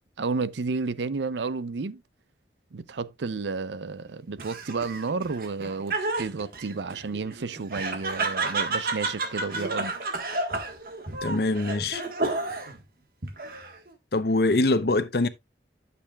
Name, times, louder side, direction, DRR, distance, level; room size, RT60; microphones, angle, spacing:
voice 1, 0.2-2.0 2.7-9.9, right 4 dB, 85° right, 0.6 m, -31 dB
Laughter, 4.4-12.8 13.2-13.9, right 3 dB, 55° right, 1.5 m, -31 dB
voice 2, 11.2-12.0 14.1-15.3, left 2 dB, 60° left, 0.8 m, -23 dB
11.5 x 6.9 x 2.4 m
head